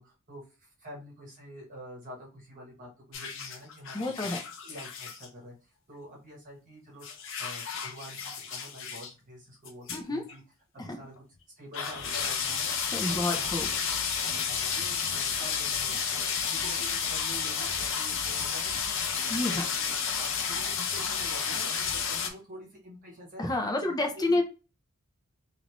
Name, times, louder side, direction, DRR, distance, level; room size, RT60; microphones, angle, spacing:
voice 1, 0.0-10.4 10.7-11.1 11.6-12.7 13.0-13.5 14.4-19.2 19.5-23.4 23.8-24.4, equal, 35° right, -2 dB, 1.1 m, -47 dB
sound 1, 3.1-5.3 7.0-9.1 9.6-10.0 10.3-10.4 11.2-11.3 11.7-22.3, left 6 dB, 60° left, 0.6 m, -31 dB
voice 2, 3.9-4.4 9.9-10.2 10.8-10.9 12.9-13.7 19.3-19.7 23.4-24.4, left 2 dB, 15° left, 3 dB, 0.6 m, -29 dB
3.2 x 2.5 x 2.9 m, 0.33 s
head